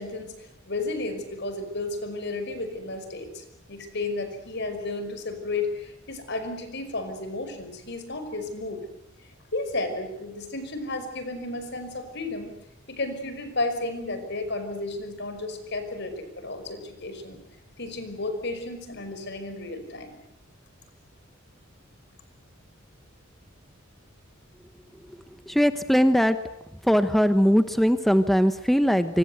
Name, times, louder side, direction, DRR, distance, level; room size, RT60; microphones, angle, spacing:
voice 1, 0.0-8.8 9.2-12.5 12.9-17.4 17.8-20.1, left 2 dB, 60° left, 9 dB, 5.5 m, -33 dB
voice 2, 25.5-26.4 26.8-29.2, equal, ahead, 10 dB, 1.0 m, -20 dB
27.0 x 25.0 x 8.1 m, 0.81 s
head